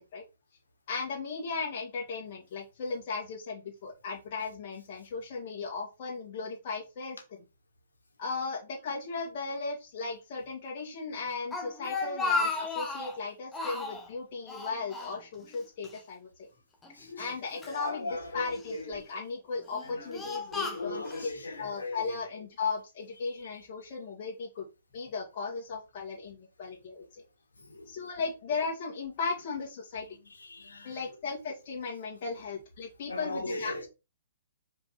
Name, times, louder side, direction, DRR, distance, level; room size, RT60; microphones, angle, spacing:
voice 1, 0.9-7.2 8.2-16.5 17.2-21.0 21.6-24.7 24.9-27.2 27.9-30.1 30.8-33.7, left 4 dB, 45° left, 2.4 m, -36 dB
Speech, 11.3-13.2 13.5-14.1 14.5-15.6 15.8-16.0 16.8-17.8 18.5-19.0 19.6-21.3, left 3 dB, 15° left, 1.3 m, -34 dB
voice 2, 17.0-17.3 17.6-19.1 19.8-22.1 27.6-27.9 30.3-31.0 33.1-33.9, left 2 dB, 75° left, 1.9 m, -39 dB
5.2 x 4.6 x 4.3 m
figure-of-eight pair, 120°, 0 cm